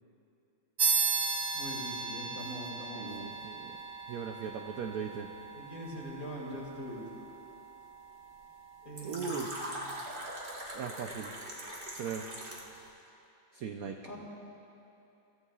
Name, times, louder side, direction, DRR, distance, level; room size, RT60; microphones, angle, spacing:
sound 1, 0.8-10.8, right 4 dB, 45° right, 0.9 m, -37 dB
voice 1, 1.5-3.4 5.5-7.2 8.8-10.0 14.0-14.2, equal, 45° left, -4 dB, 2.9 m, -43 dB
voice 2, 2.9-3.8 4.1-5.3 9.0-9.5 10.7-11.3 12.0-12.3 13.5-14.0, right 7 dB, 75° right, 4 dB, 0.8 m, -38 dB
Fill (with liquid), 9.0-12.8, right 1 dB, 30° right, 1.5 m, -41 dB
22.5 x 14.0 x 2.4 m, 2.8 s
omnidirectional pair, 2.2 m